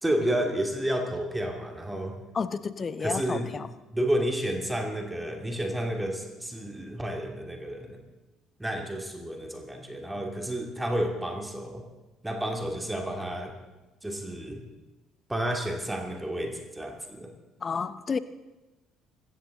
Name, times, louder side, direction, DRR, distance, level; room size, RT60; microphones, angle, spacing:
voice 1, 0.0-2.2 3.0-3.6 3.9-8.0 8.6-11.8 12.2-13.6 14.0-14.6 15.3-17.3, right 1 dB, 10° right, 3 dB, 2.5 m, -31 dB
voice 2, 2.3-3.7 17.6-18.2, left 5 dB, 35° left, 15 dB, 0.8 m, -31 dB
25.5 x 13.0 x 3.9 m, 1.1 s
figure-of-eight pair, 50°, 0 cm